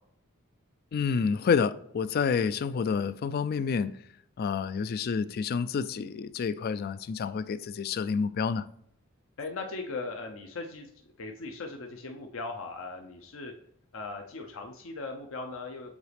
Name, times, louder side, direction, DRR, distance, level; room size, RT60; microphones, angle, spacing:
voice 1, 0.9-3.9 4.4-8.6, left 6 dB, 45° left, 0.3 m, -29 dB
voice 2, 9.4-10.9 11.2-13.5 13.9-15.9, left 3 dB, 65° left, 0.7 m, -38 dB
7.2 x 4.1 x 3.3 m
head